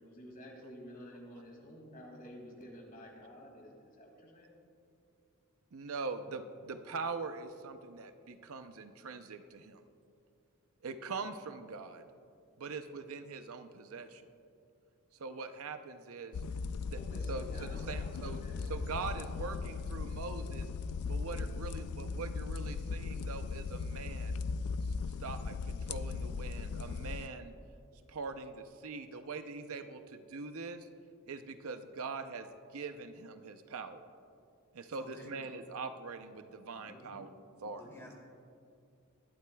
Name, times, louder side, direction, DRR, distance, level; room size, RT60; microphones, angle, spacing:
voice 1, 0.0-4.6 15.9-16.1 16.9-19.2 20.0-20.1 21.3-21.7, equal, 40° left, 0 dB, 2.3 m, -51 dB
voice 2, 5.7-9.8 10.8-12.1 12.6-14.3 15.2-16.4 16.9-17.0 17.3-20.7 21.1-24.4 25.2-27.5 28.1-30.9 31.3-34.0 34.7-37.3 37.6-37.9, right 4 dB, 70° right, 9 dB, 0.6 m, -42 dB
sound 1, 16.3-27.3, left 4 dB, 75° left, 0.4 m, -38 dB
voice 3, 34.9-35.3 36.7-37.4 37.8-38.1, left 1 dB, 10° left, -2 dB, 2.6 m, -53 dB
21.0 x 11.5 x 2.3 m, 2.4 s
head